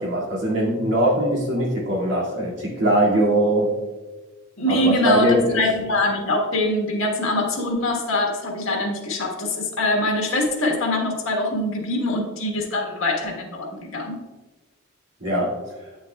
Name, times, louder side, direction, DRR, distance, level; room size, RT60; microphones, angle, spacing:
voice 1, 0.0-3.7 4.7-5.6 15.2-15.5, right 1 dB, 60° right, -4 dB, 2.1 m, -21 dB
voice 2, 4.6-14.2, left 1 dB, 85° left, 0 dB, 1.4 m, -23 dB
8.8 x 6.3 x 2.3 m, 1.2 s
head